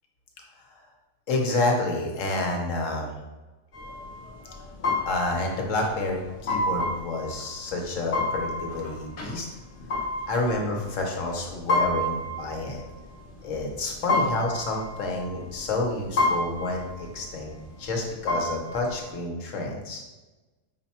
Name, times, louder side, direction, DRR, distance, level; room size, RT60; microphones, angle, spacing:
voice 1, 1.3-3.2 5.0-9.5 10.3-12.8 13.4-20.0, left 2 dB, 75° left, 1 dB, 1.2 m, -29 dB
sound 1, 3.7-19.1, left 2 dB, 50° left, 0.9 m, -30 dB
5.7 x 2.2 x 4.1 m, 1.1 s
omnidirectional pair, 1.3 m